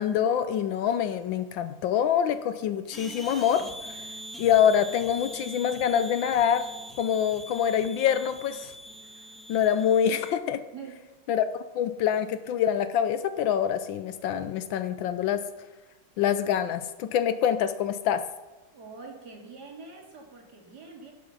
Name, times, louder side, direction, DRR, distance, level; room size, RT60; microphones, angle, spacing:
voice 1, 0.0-3.7 4.4-6.7 7.0-8.7 9.5-10.6 11.3-11.4 11.7-15.4 16.2-18.3, left 9 dB, 75° left, 11 dB, 1.3 m, -25 dB
sound 1, 2.9-10.3, equal, ahead, 1.1 m, -43 dB
voice 2, 18.7-21.1, right 4 dB, 50° right, 0 dB, 2.7 m, -44 dB
17.0 x 7.7 x 5.5 m, 1.1 s
omnidirectional pair, 2.3 m